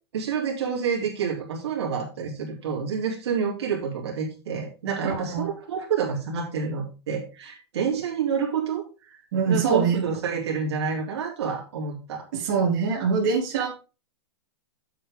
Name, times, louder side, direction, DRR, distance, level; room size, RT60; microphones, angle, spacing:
voice 1, 0.1-9.2 9.5-12.2, right 6 dB, 70° right, -2 dB, 3.4 m, -28 dB
voice 2, 5.0-5.4 9.3-10.0 12.4-13.7, right 5 dB, 40° right, -3 dB, 3.7 m, -23 dB
8.7 x 8.2 x 3.7 m, 0.32 s
supercardioid pair, 180°, 14 cm